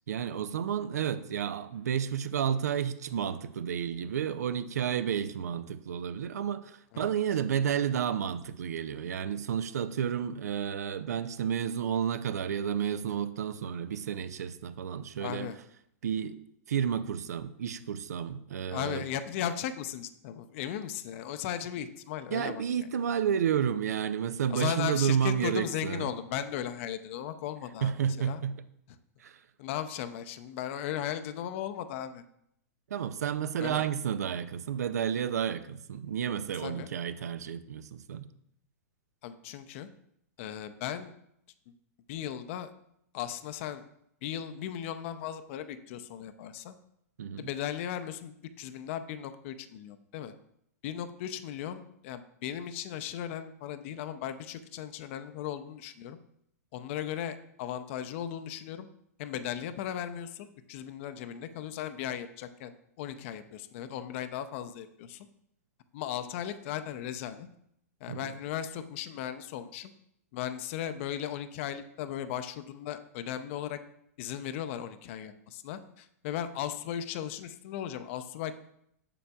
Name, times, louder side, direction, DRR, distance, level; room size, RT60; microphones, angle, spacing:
voice 1, 0.1-15.5 16.0-16.4 16.7-19.0 22.3-26.1 27.8-28.6 29.2-29.4 32.9-38.3 47.2-47.5 68.1-68.3, right 8 dB, 80° right, 0.5 m, -31 dB
voice 2, 6.9-7.4 15.2-15.6 18.7-22.9 24.5-28.4 29.6-32.2 33.6-33.9 36.5-36.9 39.2-39.9 40.4-41.1 42.1-42.7 43.1-43.8 44.2-46.7 47.4-50.3 50.8-56.2 56.7-58.9 59.2-65.3 65.9-67.5 68.0-69.9 70.3-73.8 74.2-78.6, left 10 dB, 50° left, 0.5 m, -37 dB
7.3 x 6.8 x 2.3 m
hypercardioid pair, 125°, 9 cm